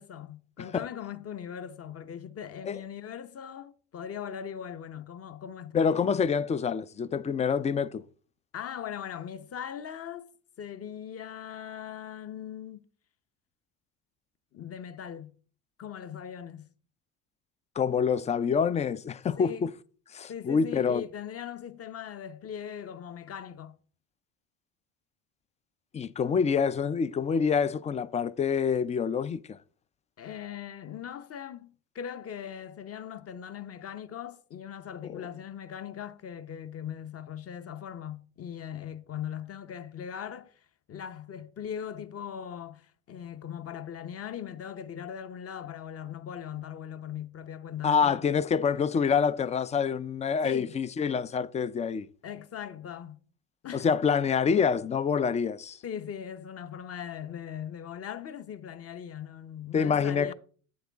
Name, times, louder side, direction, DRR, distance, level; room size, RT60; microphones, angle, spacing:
voice 1, 0.0-5.9 8.5-10.3 10.6-12.9 14.5-15.3 15.8-16.7 19.4-19.7 20.3-23.8 30.2-40.5 40.9-48.4 50.4-50.7 52.2-53.2 53.6-54.0 55.8-60.3, left 9 dB, 35° left, 0.8 m, -40 dB
voice 2, 5.7-8.0 17.8-19.7 20.1-21.0 25.9-29.6 35.0-35.3 47.8-52.1 53.7-55.8 59.7-60.3, left 6 dB, 20° left, 0.3 m, -26 dB
8.5 x 7.9 x 3.5 m
supercardioid pair, 85°, 42 cm